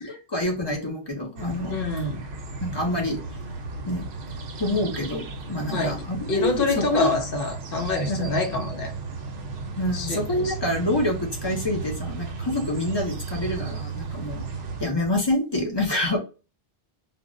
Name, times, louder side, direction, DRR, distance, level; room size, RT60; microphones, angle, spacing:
voice 1, 0.0-1.8 2.6-3.2 3.8-4.0 4.6-7.2 8.1-8.3 9.8-14.5 14.8-16.2, left 1 dB, 30° left, 1 dB, 0.6 m, -27 dB
sound 1, 1.4-14.8, right 4 dB, 85° right, 0.8 m, -35 dB
voice 2, 1.7-2.2 5.7-6.0 6.3-8.9 9.9-10.6, left 3 dB, 65° left, 2 dB, 0.9 m, -26 dB
3.4 x 2.1 x 2.4 m, 0.32 s
omnidirectional pair, 1.0 m